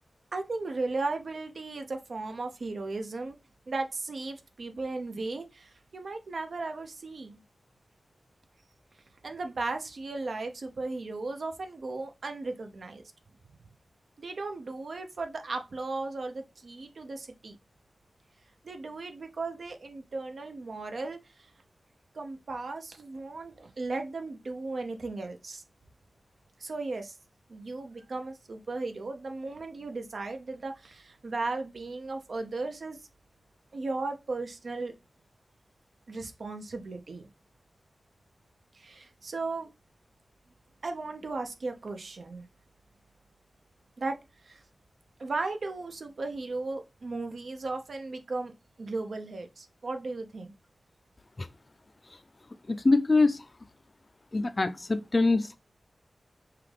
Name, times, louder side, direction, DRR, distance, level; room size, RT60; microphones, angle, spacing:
voice 1, 0.3-3.4 3.7-7.4 9.2-13.0 14.2-17.6 18.6-21.5 22.1-25.6 26.6-27.1 27.5-33.0 33.7-34.9 36.1-37.3 38.7-39.7 40.8-42.5 44.0-44.1 44.4-44.6 45.2-48.5 48.8-50.5, right 3 dB, 70° right, 0.8 m, -36 dB
voice 2, 52.7-53.5 54.3-55.6, left 3 dB, 40° left, 0.5 m, -24 dB
5.8 x 2.4 x 3.4 m
wide cardioid pair, 70°, 0 cm